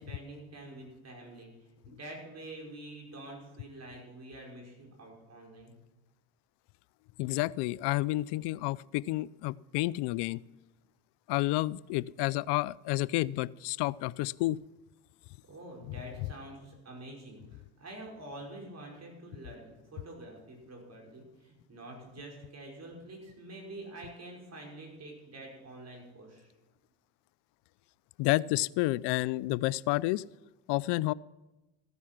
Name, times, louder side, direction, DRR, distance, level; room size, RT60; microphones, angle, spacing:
voice 1, 0.0-1.5 1.8-5.7 15.5-26.5, right 1 dB, 35° right, 0 dB, 5.2 m, -47 dB
voice 2, 7.2-10.4 11.3-14.6 28.2-30.2 30.7-31.1, left 19 dB, 70° left, 22 dB, 0.5 m, -30 dB
15.0 x 9.6 x 6.0 m, 1.1 s
supercardioid pair, 90°, 43 cm